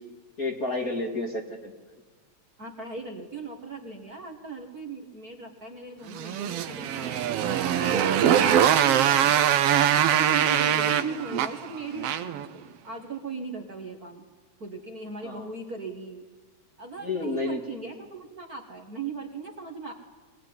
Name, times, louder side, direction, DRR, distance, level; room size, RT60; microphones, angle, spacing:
voice 1, 0.4-1.7 15.2-15.5 17.0-17.6, left 2 dB, 30° left, 2 dB, 2.3 m, -30 dB
voice 2, 2.6-7.3 7.7-9.8 10.1-14.3 14.6-16.2 16.8-19.9, right 4 dB, 35° right, 2 dB, 1.9 m, -38 dB
Motorcycle, 6.1-12.5, right 9 dB, 65° right, 1.7 m, -22 dB
22.5 x 20.5 x 9.7 m, 1.3 s
omnidirectional pair, 3.4 m